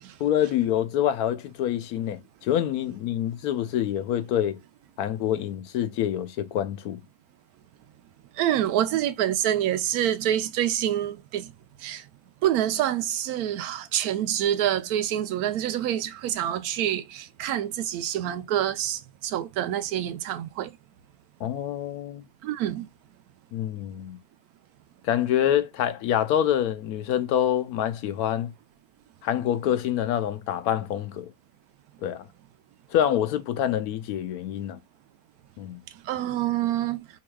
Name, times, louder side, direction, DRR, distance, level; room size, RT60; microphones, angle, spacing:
voice 1, 0.2-4.6 5.0-7.0 21.4-22.2 23.5-24.2 25.0-28.5 29.2-31.3 32.0-32.3 32.9-34.8 35.6-35.8, left 10 dB, 85° left, 1.1 m, -26 dB
voice 2, 8.4-11.5 11.8-12.0 12.4-20.7 22.4-22.9 36.0-37.0, right 11 dB, 90° right, 1.1 m, -27 dB
4.7 x 3.0 x 2.2 m
omnidirectional pair, 1.5 m